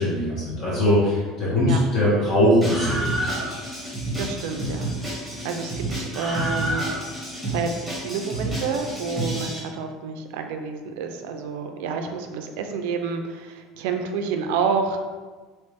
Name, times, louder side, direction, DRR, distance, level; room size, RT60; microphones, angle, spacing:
voice 1, 0.0-3.6, equal, 45° left, -8 dB, 1.1 m, -21 dB
Screaming, 2.6-9.6, right 1 dB, ahead, 1.2 m, -29 dB
voice 2, 4.2-6.9 7.5-15.0, right 5 dB, 80° right, 5 dB, 0.4 m, -29 dB
3.1 x 2.9 x 3.3 m, 1.3 s
cardioid pair, 150°, 0 cm